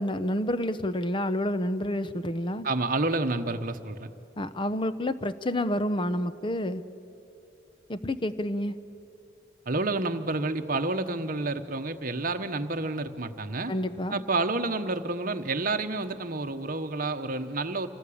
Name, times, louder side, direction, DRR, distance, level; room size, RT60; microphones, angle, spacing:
voice 1, 0.0-2.7 4.4-6.8 7.9-8.7 13.7-14.2, left 1 dB, 25° left, 12 dB, 0.7 m, -29 dB
voice 2, 2.6-4.1 9.7-13.7 14.1-17.9, right 2 dB, 45° right, 7 dB, 1.1 m, -29 dB
27.0 x 19.0 x 8.6 m, 2.7 s
head